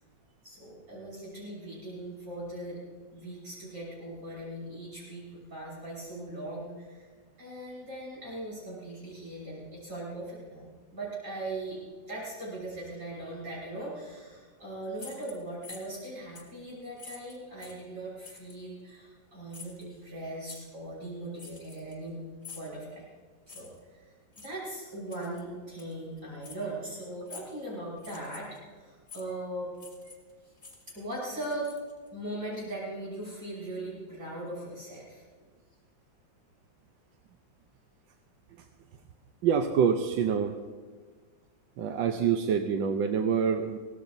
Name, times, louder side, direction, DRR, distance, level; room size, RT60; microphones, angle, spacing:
voice 1, 0.4-2.8 3.1-7.1 7.4-11.8 12.1-22.2 22.5-23.0 23.5-29.7 30.9-31.7 32.1-35.2, right 1 dB, 55° right, -6 dB, 6.9 m, -39 dB
sound 1, 14.9-16.0 16.3-16.6 17.0-17.8 18.2-18.6 19.5-19.8 20.5-20.6 21.4-22.1 22.4-22.7 23.5-23.8 24.3-24.5 25.1-25.4 25.8-25.9 26.4-26.6 27.3-27.6 28.0-28.6 29.1-29.3 29.8-30.3 30.6-32.1, left 5 dB, 25° left, 3.0 m, -48 dB
voice 2, 39.4-40.6 41.8-43.8, right 7 dB, 80° right, 4 dB, 1.5 m, -26 dB
23.5 x 17.5 x 2.7 m, 1.5 s
omnidirectional pair, 2.0 m